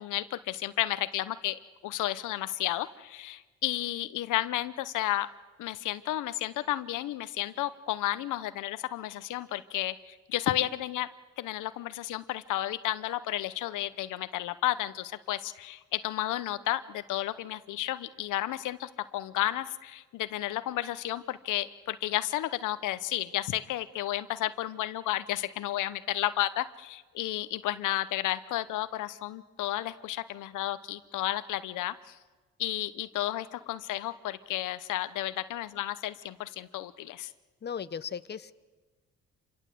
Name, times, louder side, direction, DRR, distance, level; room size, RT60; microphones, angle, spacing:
voice 1, 0.0-5.3 5.6-11.1 11.4-32.2 32.6-37.3, left 14 dB, 85° left, 13 dB, 0.9 m, -32 dB
voice 2, 37.6-38.5, left 7 dB, 35° left, 13 dB, 0.8 m, -36 dB
27.0 x 23.0 x 7.7 m, 1.3 s
cardioid pair, 90°, 30 cm